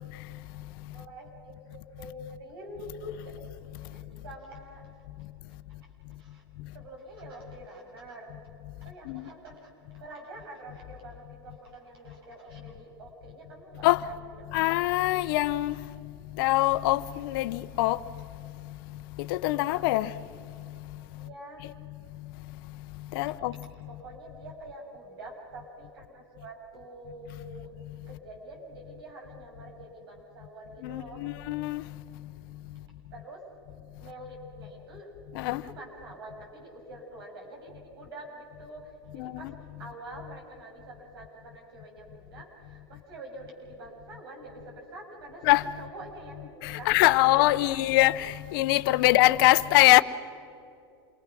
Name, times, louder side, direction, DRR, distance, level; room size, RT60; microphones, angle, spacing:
voice 1, 0.9-3.5 3.9-4.9 5.7-5.9 6.2-6.4 6.7-8.3 8.8-15.1 21.2-21.7 23.5-27.7 28.1-31.3 33.1-33.5 34.0-39.5 39.8-47.8, right 1 dB, 85° right, 7.0 m, -46 dB
voice 2, 14.5-15.7 16.4-18.0 19.3-20.1 23.1-23.5 30.8-31.8 35.4-35.6 39.2-39.5 45.4-45.6 46.6-50.0, left 18 dB, 65° left, 0.7 m, -23 dB
28.0 x 22.0 x 6.2 m
supercardioid pair, 115°, 13 cm